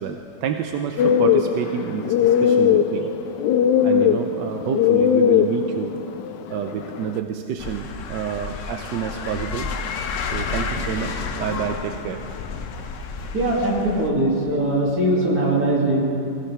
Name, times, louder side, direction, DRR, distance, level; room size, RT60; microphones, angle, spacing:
voice 1, 0.0-3.2 3.8-5.9 6.5-9.7 10.3-12.6, right 8 dB, 85° right, 5 dB, 1.3 m, -29 dB
sound 1, 1.0-7.2, left 8 dB, 80° left, 1.2 m, -20 dB
sound 2, 7.6-14.1, left 5 dB, 60° left, 0.9 m, -30 dB
voice 2, 13.3-16.0, right 1 dB, 55° right, -5 dB, 3.1 m, -21 dB
19.5 x 16.0 x 3.4 m, 2.7 s
omnidirectional pair, 1.9 m